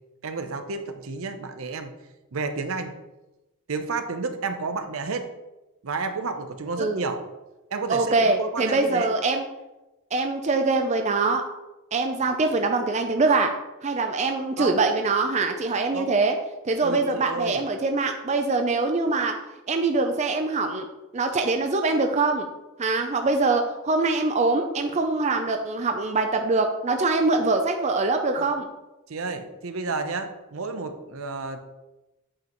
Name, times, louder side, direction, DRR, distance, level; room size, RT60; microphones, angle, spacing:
voice 1, 0.2-1.9 2.3-2.9 3.7-5.3 5.8-7.2 7.7-9.1 14.6-14.8 15.9-16.2 16.8-17.6 28.4-28.5 29.1-31.6, right 4 dB, 70° right, 8 dB, 0.7 m, -31 dB
voice 2, 7.9-9.5 10.1-11.4 11.9-13.5 13.8-16.4 16.6-19.3 19.7-20.9 21.1-22.5 22.8-28.7, right 3 dB, 30° right, 5 dB, 0.5 m, -23 dB
8.4 x 5.2 x 3.0 m, 1.0 s
head